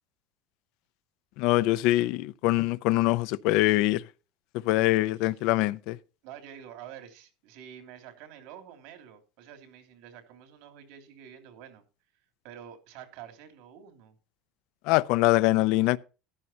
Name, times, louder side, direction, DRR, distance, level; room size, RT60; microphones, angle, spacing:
voice 1, 1.4-4.0 4.6-6.0 14.9-16.0, left 18 dB, 65° left, 0.6 m, -23 dB
voice 2, 5.0-5.5 6.2-11.8 12.4-14.2, right 9 dB, 75° right, 3.0 m, -48 dB
14.0 x 11.0 x 2.8 m
cardioid pair, 150°, 0 cm